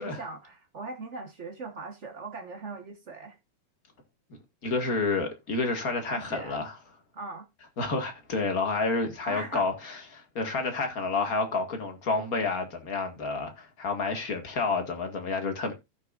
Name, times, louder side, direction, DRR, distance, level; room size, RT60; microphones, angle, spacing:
voice 1, 0.0-3.4 6.1-6.6 7.1-7.4 9.2-9.7, right 3 dB, 80° right, 0.6 m, -40 dB
voice 2, 4.6-6.8 7.8-15.7, left 3 dB, 35° left, 1.9 m, -29 dB
16.0 x 6.4 x 2.5 m
omnidirectional pair, 3.5 m